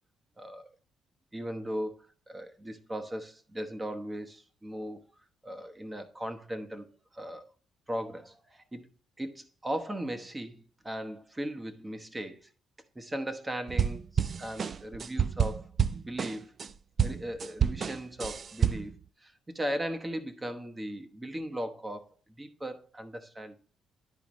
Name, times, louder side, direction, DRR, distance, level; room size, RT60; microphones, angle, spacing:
voice 1, 0.4-0.7 1.3-5.0 5.4-6.9 7.1-7.5 7.9-8.9 9.2-12.5 12.9-16.5 17.0-18.9 19.2-23.6, equal, 15° right, 1.0 m, -38 dB
sound 1, 13.7-16.7 17.0-19.0, right 7 dB, 45° right, 0.3 m, -29 dB
10.5 x 5.0 x 3.1 m
cardioid pair, 90°, 0 cm